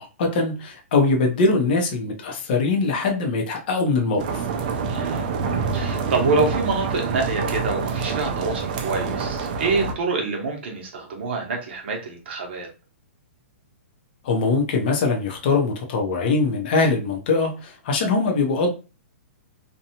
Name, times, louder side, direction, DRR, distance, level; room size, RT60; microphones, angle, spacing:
voice 1, 0.0-4.4 14.2-18.7, left 3 dB, 40° left, 2 dB, 0.6 m, -22 dB
sound 1, 4.2-9.9, right 5 dB, 35° right, 0.4 m, -26 dB
voice 2, 4.9-5.4 5.7-12.7, right 3 dB, 50° right, 1 dB, 0.8 m, -26 dB
2.7 x 2.2 x 2.8 m, 0.32 s
hypercardioid pair, 170°, 8 cm